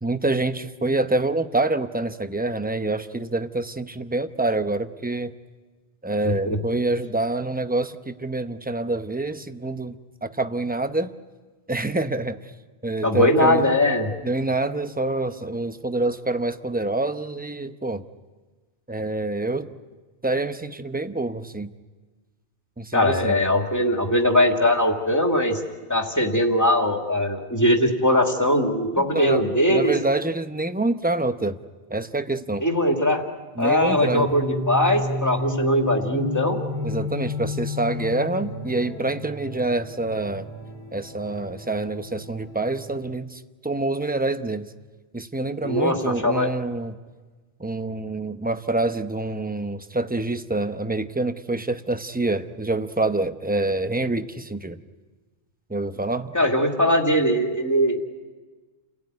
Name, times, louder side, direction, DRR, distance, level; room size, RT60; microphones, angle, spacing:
voice 1, 0.0-5.3 6.0-11.1 11.7-12.5 12.8-13.7 14.2-18.0 18.9-19.7 20.2-21.7 22.8-23.4 29.0-31.6 31.9-32.6 33.6-34.3 36.8-40.5 40.9-44.7 45.1-47.0 47.6-54.8 55.7-56.3, right 2 dB, 10° right, 9 dB, 0.7 m, -26 dB
voice 2, 6.2-6.6 13.0-14.1 22.9-25.6 25.9-29.9 32.6-33.2 33.6-36.6 45.6-46.5 56.3-58.0, left 1 dB, 15° left, 2 dB, 2.4 m, -21 dB
sound 1, 33.8-43.0, left 2 dB, 25° right, 2.7 m, -32 dB
30.0 x 17.0 x 9.5 m, 1.3 s
omnidirectional pair, 1.1 m